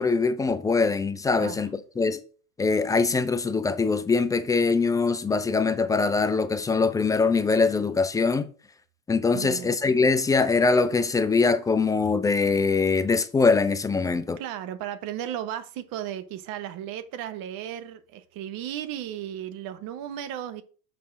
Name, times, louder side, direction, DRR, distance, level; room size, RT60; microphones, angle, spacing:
voice 1, 0.0-2.2 2.6-8.5 9.1-14.4, left 4 dB, 10° left, 0.3 m, -23 dB
voice 2, 9.3-9.7 14.4-20.6, right 11 dB, 50° right, 1.1 m, -35 dB
6.7 x 4.1 x 5.9 m
hypercardioid pair, 100°, 44 cm